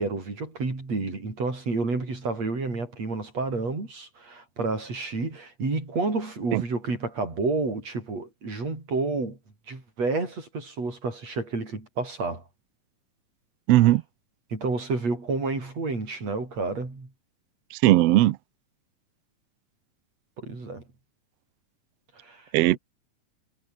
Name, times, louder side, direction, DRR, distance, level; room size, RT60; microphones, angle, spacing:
voice 1, 0.0-9.4 9.7-12.4 13.7-13.8 14.5-17.1 20.4-20.8 22.2-22.8, right 3 dB, 50° right, 8.2 m, -30 dB
voice 2, 13.7-14.0 17.8-18.4 22.5-22.8, right 16 dB, 85° right, 1.3 m, -18 dB
omnidirectional pair, 3.8 m